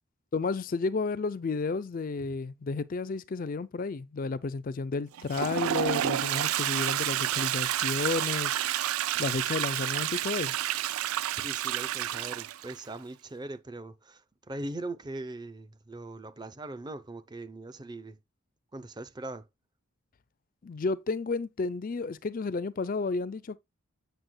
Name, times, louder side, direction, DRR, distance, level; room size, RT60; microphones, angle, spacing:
voice 1, 0.3-8.6 9.2-10.6 20.6-23.6, left 4 dB, 40° left, 0.4 m, -32 dB
Toilet flush, 5.1-12.8, right 12 dB, 80° right, 0.4 m, -30 dB
voice 2, 11.4-18.2 18.7-19.5, right 2 dB, 20° right, 0.6 m, -40 dB
7.9 x 6.7 x 2.2 m
head